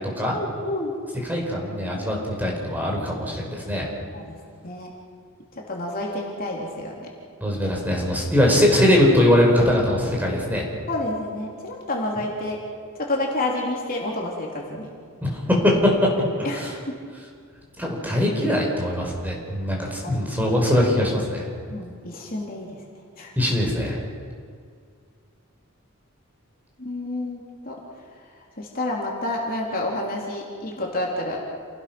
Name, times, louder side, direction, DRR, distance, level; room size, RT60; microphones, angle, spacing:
voice 1, 0.3-0.9 4.1-4.4 4.6-4.9 5.6-7.1 10.9-12.6 13.0-15.0 16.4-17.0 20.0-20.3 21.7-22.8 23.2-23.3 26.8-27.8 28.6-31.4, left 1 dB, 40° left, -2 dB, 3.6 m, -29 dB
voice 2, 1.2-3.9 7.4-10.6 15.2-16.7 17.8-21.4 23.4-24.0, left 1 dB, 10° right, -1 dB, 5.2 m, -21 dB
29.0 x 19.0 x 6.2 m, 2.1 s
head